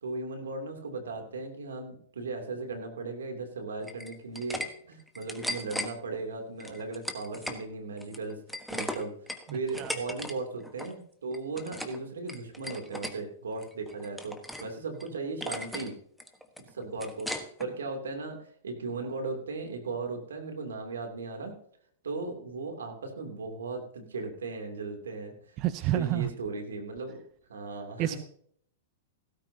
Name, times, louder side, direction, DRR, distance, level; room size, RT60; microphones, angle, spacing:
voice 1, 0.0-8.4 8.7-9.2 9.5-15.9 16.6-17.3 17.6-18.4 18.6-21.6 22.0-25.3 25.9-27.2 27.5-28.2, right 3 dB, 80° right, 3 dB, 2.9 m, -37 dB
sound 1, 3.8-4.7 5.0-5.9 6.6-7.6 8.0-10.3 10.6-10.9 11.3-12.0 12.3-13.1 13.6-14.7 15.0-15.1 15.4-15.9 16.2-17.7, left 1 dB, ahead, 1.3 m, -37 dB
voice 2, 25.6-26.3 28.0-28.2, right 14 dB, 40° right, 13 dB, 0.7 m, -28 dB
16.5 x 13.5 x 2.8 m, 0.63 s
hypercardioid pair, 115°, 0 cm